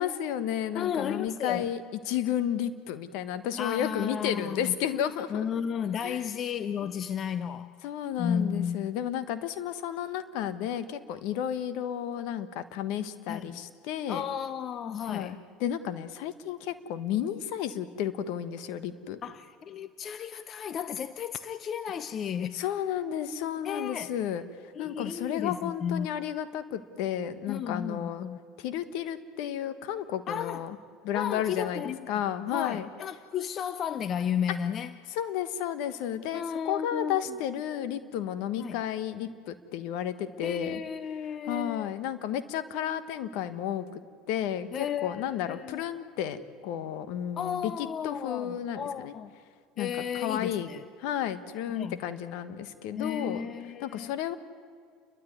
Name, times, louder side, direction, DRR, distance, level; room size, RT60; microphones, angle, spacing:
voice 1, 0.0-1.8 2.1-5.6 6.0-6.2 6.8-6.9 7.8-14.2 15.1-19.2 22.5-24.4 24.8-28.3 28.6-30.8 31.0-32.9 35.1-40.8 41.5-44.0 44.3-49.1 49.8-50.7 51.0-53.5 53.8-54.4, left 10 dB, 70° left, 1.4 m, -32 dB
voice 2, 0.7-1.7 3.6-4.8 5.3-7.7 8.2-8.9 13.3-13.6 14.1-15.3 19.2-22.5 23.6-24.1 24.7-26.1 27.5-28.4 30.3-30.6 31.1-32.1 32.5-34.9 36.3-37.2 38.6-38.8 40.4-41.9 44.7-45.8 47.4-49.3 49.8-50.8 51.7-52.1 52.9-54.1, left 8 dB, 45° left, 0.7 m, -33 dB
30.0 x 13.0 x 9.3 m
hypercardioid pair, 85°, 0 cm